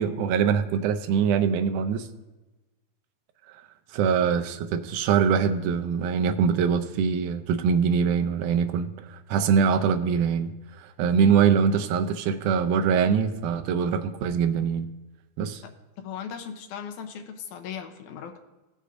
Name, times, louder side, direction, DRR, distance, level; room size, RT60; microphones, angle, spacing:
voice 1, 0.0-2.1 3.9-10.5 10.8-14.9 15.4-15.6, right 7 dB, 85° right, 8 dB, 2.1 m, -23 dB
voice 2, 16.0-18.4, left 7 dB, 80° left, 6 dB, 2.2 m, -37 dB
16.5 x 6.6 x 2.5 m, 1.1 s
omnidirectional pair, 3.5 m